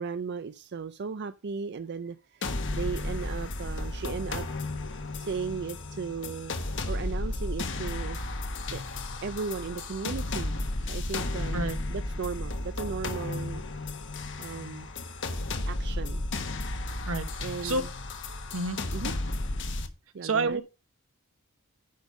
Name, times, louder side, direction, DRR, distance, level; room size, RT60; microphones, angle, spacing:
voice 1, 0.0-4.5 5.2-6.6 6.9-8.2 8.7-8.8 9.2-10.6 10.9-13.6 14.4-14.9 15.7-16.2 17.4-17.9 18.9-19.1 20.1-20.6, right 5 dB, 55° right, 0.5 m, -36 dB
sound 1, 2.4-19.9, left 2 dB, 60° left, 1.4 m, -33 dB
voice 2, 17.1-17.8 18.5-18.8 20.2-20.6, right 3 dB, 80° right, 1.3 m, -29 dB
10.5 x 5.3 x 5.2 m
head